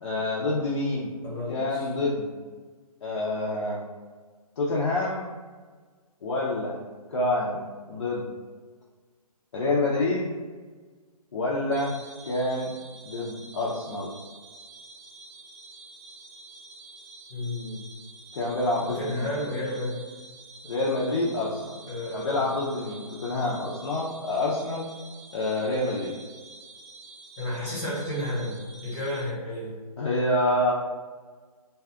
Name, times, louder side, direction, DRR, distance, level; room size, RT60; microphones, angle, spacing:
voice 1, 0.0-1.1 1.5-2.3 3.0-3.8 4.6-5.3 6.2-6.8 7.1-7.6 7.9-8.3 9.5-10.3 11.3-12.0 12.2-12.7 13.0-14.1 18.3-19.5 20.6-21.8 22.1-24.9 25.3-26.2 30.0-30.7, left 2 dB, 45° left, -5 dB, 0.5 m, -27 dB
voice 2, 1.2-1.9 17.3-17.8 18.9-20.1 21.9-22.5 27.4-29.8, left 1 dB, 15° left, -8 dB, 1.0 m, -32 dB
sound 1, 11.7-29.2, right 3 dB, 20° right, 0.5 m, -48 dB
2.6 x 2.3 x 3.5 m, 1.4 s
figure-of-eight pair, 150°, 20 cm